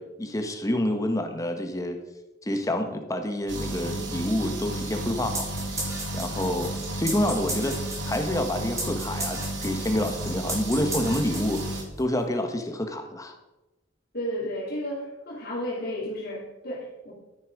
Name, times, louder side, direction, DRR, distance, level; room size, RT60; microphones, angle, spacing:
voice 1, 0.0-2.0 2.4-5.5 6.1-13.3, left 1 dB, 20° left, 6 dB, 1.4 m, -28 dB
sound 1, 3.5-11.8, right 1 dB, 70° right, 2.9 m, -33 dB
sound 2, 5.3-12.0, right 2 dB, 15° right, 2.7 m, -35 dB
voice 2, 14.1-17.1, equal, 55° left, -4 dB, 3.4 m, -33 dB
13.0 x 10.0 x 4.9 m, 1.0 s
head